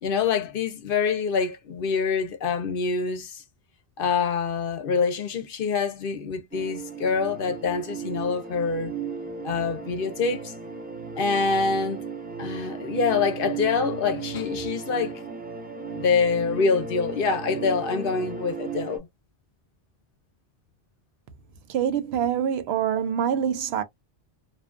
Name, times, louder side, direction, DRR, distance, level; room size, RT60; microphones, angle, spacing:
voice 1, 0.0-3.4 4.0-8.9 9.4-10.5 11.2-12.0 12.4-15.1 15.9-19.1, left 5 dB, 65° left, 0.7 m, -25 dB
sound 1, 6.5-19.0, right 5 dB, 10° right, 0.6 m, -35 dB
voice 2, 21.7-23.8, right 8 dB, 75° right, 0.8 m, -25 dB
2.5 x 2.3 x 2.4 m
omnidirectional pair, 1.1 m